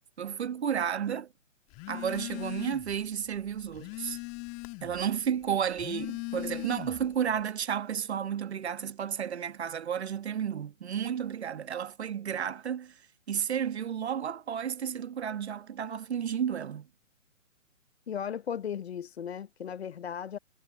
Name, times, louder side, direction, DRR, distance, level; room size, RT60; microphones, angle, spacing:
voice 1, 0.2-1.3 1.9-4.2 4.8-12.9 13.3-16.9, right 8 dB, 55° right, 1.4 m, -32 dB
Telephone, 1.7-3.0 3.4-5.0 5.7-7.2, left 28 dB, 15° left, 1.4 m, -39 dB
voice 2, 18.1-20.4, left 8 dB, 50° left, 0.9 m, -36 dB
figure-of-eight pair, 135°, 40 cm